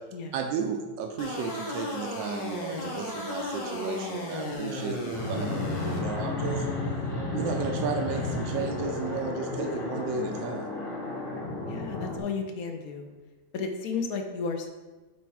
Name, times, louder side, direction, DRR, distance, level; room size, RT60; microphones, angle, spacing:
voice 1, 0.3-5.4 6.0-6.7 7.3-10.7, right 6 dB, 80° right, 3 dB, 1.4 m, -33 dB
sound 1, 1.2-6.0, left 2 dB, 80° left, 2.1 m, -35 dB
Fixed-wing aircraft airplane, 5.1-12.2, left 2 dB, 30° left, 1.4 m, -32 dB
voice 2, 11.6-13.1 13.5-14.7, left 5 dB, 60° left, 5 dB, 1.1 m, -33 dB
8.1 x 3.5 x 4.6 m, 1.2 s
omnidirectional pair, 2.0 m